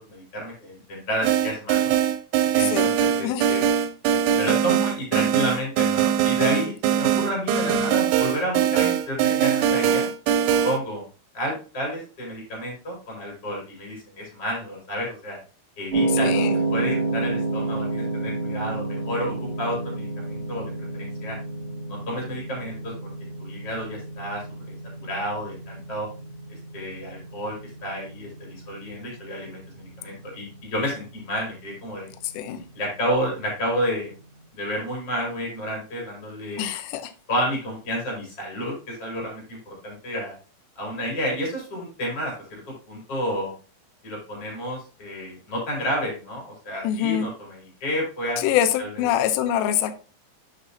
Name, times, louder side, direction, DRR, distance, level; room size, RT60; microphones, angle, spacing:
voice 1, 0.0-1.9 2.5-3.6 4.3-10.1 10.6-11.0 11.3-15.4 15.8-16.4 16.7-21.4 21.9-23.1 23.4-24.7 25.0-26.1 26.7-27.6 27.8-32.1 32.8-34.1 34.5-36.6 37.3-40.3 40.8-43.5 44.0-48.4 48.8-49.0, equal, 30° left, 4.1 m, -30 dB
sound 1, 1.2-10.8, right 9 dB, 80° right, 2.9 m, -21 dB
voice 2, 2.6-2.9 3.2-3.6 16.1-16.6 32.3-32.6 36.6-37.1 46.8-47.3 48.4-50.0, left 10 dB, 85° left, 2.5 m, -25 dB
sound 2, 15.9-34.2, right 3 dB, 30° right, 1.3 m, -31 dB
8.3 x 6.7 x 2.8 m
omnidirectional pair, 5.9 m